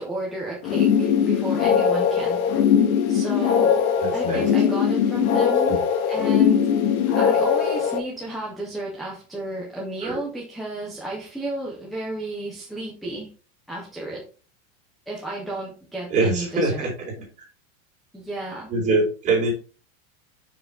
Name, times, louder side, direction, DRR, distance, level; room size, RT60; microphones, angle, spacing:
voice 1, 0.0-2.4 3.1-3.8 4.1-5.7 6.1-6.7 7.1-13.3 13.7-14.2 15.1-16.9 18.1-18.7, right 1 dB, ahead, -3 dB, 0.3 m, -33 dB
sound 1, 0.6-8.0, left 7 dB, 85° left, 1.7 m, -20 dB
voice 2, 4.0-4.5 5.7-5.8 10.0-10.2 16.1-16.9 18.7-19.5, right 2 dB, 20° right, -4 dB, 4.4 m, -23 dB
6.8 x 6.6 x 3.7 m, 0.36 s
supercardioid pair, 175°, 41 cm